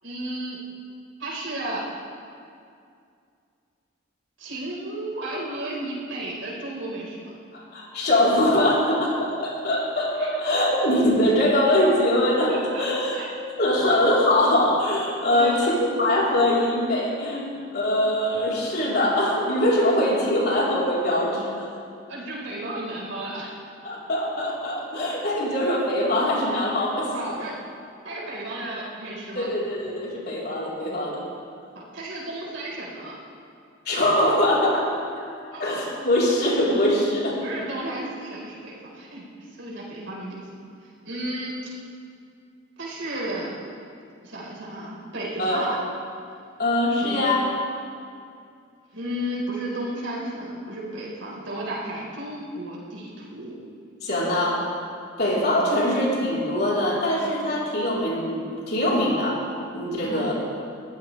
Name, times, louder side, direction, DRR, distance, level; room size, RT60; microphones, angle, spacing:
voice 1, 0.0-0.6 1.2-1.8 4.4-7.3 10.2-10.4 11.7-11.8 12.5-13.3 15.3-15.9 22.1-23.6 27.1-27.6 28.0-29.5 31.7-33.2 35.5-35.6 37.4-40.5 40.8-41.5 42.8-43.5 44.2-45.8 47.0-47.3 48.9-53.6 60.0-60.3, right 1 dB, 75° right, -4 dB, 4.6 m, -33 dB
voice 2, 7.5-13.2 13.6-21.7 23.8-27.1 29.3-31.2 33.9-35.3 35.6-37.4 45.4-45.7 46.6-47.5 54.0-54.6 55.2-59.4 59.7-60.3, left 1 dB, 55° left, -6 dB, 4.0 m, -22 dB
22.5 x 15.5 x 3.4 m, 2.4 s
head